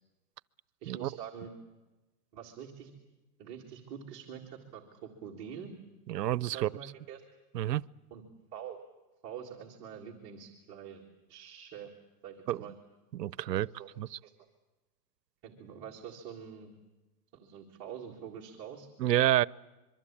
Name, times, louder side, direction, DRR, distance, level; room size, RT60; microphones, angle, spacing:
voice 1, 0.8-1.5 2.3-2.9 3.4-5.7 6.5-7.2 8.1-8.2 8.5-8.8 9.2-11.0 11.3-11.9 12.2-12.7 13.5-13.9 14.2-14.3 15.4-16.7 17.3-18.9, right 8 dB, 20° right, 1.7 m, -45 dB
voice 2, 6.1-6.7 7.5-7.8 12.5-12.6 13.1-13.7 14.0-14.1 19.0-19.5, right 13 dB, 90° right, 0.8 m, -28 dB
25.0 x 23.5 x 8.6 m
hypercardioid pair, 180°, 48 cm